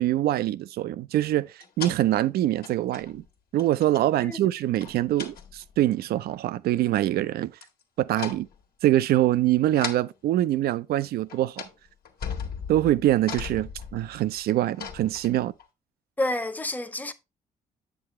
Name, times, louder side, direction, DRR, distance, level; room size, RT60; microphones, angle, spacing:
voice 1, 0.0-3.2 3.5-7.5 8.0-8.5 8.8-11.6 12.7-15.5, right 14 dB, 70° right, 0.4 m, -24 dB
sound 1, 1.6-2.0 2.6-3.3 3.6-4.1 4.8-5.8 7.6-7.8 8.1-8.6 9.8-10.1 11.0-11.1 11.3-11.8 12.0-15.6, left 6 dB, 65° left, 1.4 m, -38 dB
voice 2, 16.2-17.1, left 1 dB, 10° left, 0.8 m, -29 dB
7.5 x 6.1 x 3.1 m
supercardioid pair, 60°, 16 cm